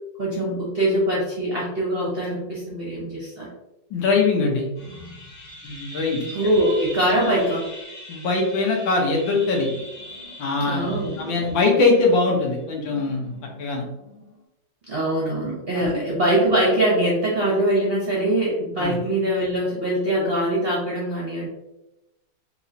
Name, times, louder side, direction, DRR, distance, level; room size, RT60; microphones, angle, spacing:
voice 1, 0.2-3.5 6.3-7.7 10.6-11.4 14.9-21.5, right 1 dB, 45° right, -5 dB, 0.8 m, -23 dB
voice 2, 3.9-4.7 5.6-6.2 8.1-9.7 10.4-13.3 13.6-13.9 15.8-16.0 18.8-19.0, left 3 dB, 75° left, 0 dB, 1.7 m, -22 dB
sound 1, 4.7-14.4, equal, 25° left, 1.1 m, -41 dB
4.6 x 3.0 x 2.7 m, 0.93 s
omnidirectional pair, 2.1 m